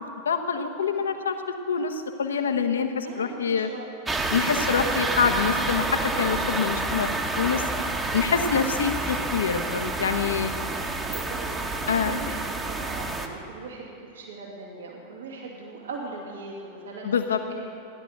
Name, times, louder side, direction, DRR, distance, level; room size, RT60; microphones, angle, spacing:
voice 1, 0.2-1.4 1.7-3.7 4.3-7.1 7.4-7.6 8.1-10.5 11.9-12.2 17.0-17.4, left 6 dB, 70° left, 6 dB, 1.1 m, -25 dB
voice 2, 3.0-3.9 4.5-4.9 10.8-17.2 17.5-17.6, right 4 dB, 65° right, -1 dB, 2.4 m, -40 dB
sound 1, 4.0-13.3, right 2 dB, 15° right, 1.3 m, -29 dB
16.0 x 11.0 x 6.6 m, 2.6 s
figure-of-eight pair, 90°, 0 cm